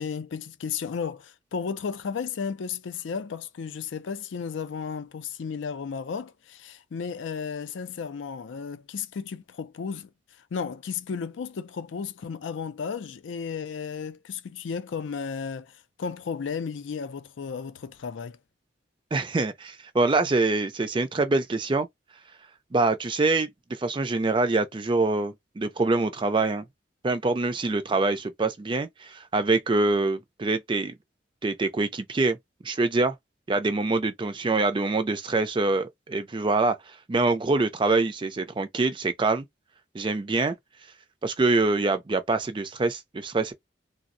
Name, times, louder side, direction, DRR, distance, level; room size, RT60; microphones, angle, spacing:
voice 1, 0.0-10.1 10.5-18.4, left 6 dB, 80° left, 0.4 m, -34 dB
voice 2, 19.1-21.9 22.7-26.6 27.0-31.0 31.4-32.4 32.6-33.2 33.5-39.5 39.9-40.6 41.2-43.5, right 3 dB, 25° right, 0.4 m, -25 dB
3.3 x 2.0 x 2.5 m
head